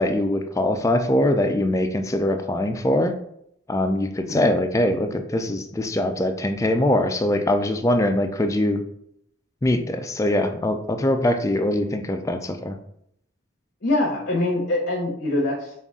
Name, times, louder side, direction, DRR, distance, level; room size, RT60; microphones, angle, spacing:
voice 1, 0.0-3.1 3.7-8.8 9.6-12.8, left 1 dB, 15° left, 6 dB, 0.3 m, -22 dB
voice 2, 13.8-15.7, left 2 dB, 55° left, -3 dB, 0.8 m, -24 dB
5.3 x 2.4 x 3.6 m, 0.72 s
head